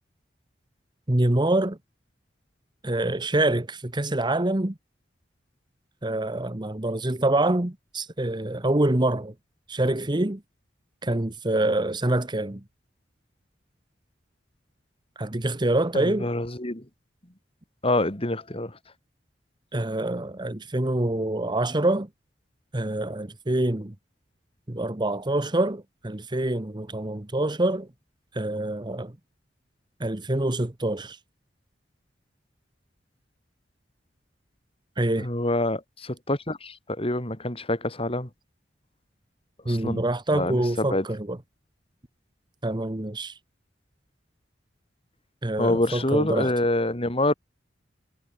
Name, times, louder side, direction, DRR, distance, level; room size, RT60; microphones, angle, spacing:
voice 1, 1.1-1.8 2.8-4.7 6.0-9.3 9.7-10.4 11.0-12.6 15.2-16.3 19.7-22.1 22.7-23.9 24.7-27.9 28.3-29.1 30.0-31.2 35.0-35.3 39.6-41.4 42.6-43.4 45.4-46.5, right 1 dB, 25° right, 1.2 m, -26 dB
voice 2, 15.9-16.8 17.8-18.7 35.2-38.3 39.7-40.0 40.3-41.0 45.6-47.3, left 1 dB, 30° left, 4.0 m, -26 dB
head